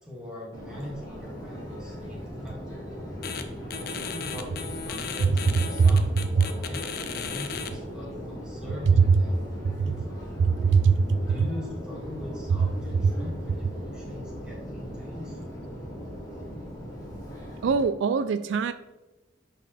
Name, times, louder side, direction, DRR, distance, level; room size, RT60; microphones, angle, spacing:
voice 1, 0.0-3.0 3.8-10.3 11.2-15.4, left 1 dB, 5° right, -5 dB, 2.1 m, -41 dB
Subway metro underground, 0.5-17.8, equal, 20° left, 2.1 m, -39 dB
sound 1, 3.2-3.4 3.7-7.7, left 6 dB, 50° left, 0.6 m, -35 dB
voice 2, 10.4-11.2 17.6-18.7, right 5 dB, 70° right, 12 dB, 0.3 m, -21 dB
10.5 x 4.4 x 3.3 m, 1.1 s
head